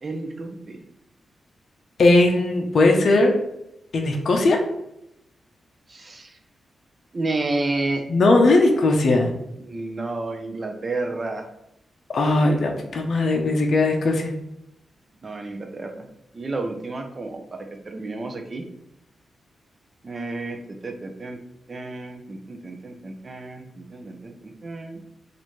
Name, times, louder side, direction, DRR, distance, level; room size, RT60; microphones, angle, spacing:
voice 1, 0.0-0.8 5.9-6.4 7.1-8.1 9.6-11.5 15.2-16.1 16.3-18.6 20.0-20.6 20.8-21.4 21.7-25.0, right 2 dB, 35° right, 4 dB, 0.5 m, -31 dB
voice 2, 2.0-3.4 3.9-4.6 8.1-9.3 12.1-14.3, left 2 dB, 55° left, 2 dB, 0.5 m, -18 dB
3.0 x 2.5 x 4.3 m, 0.83 s
wide cardioid pair, 120°, 0 cm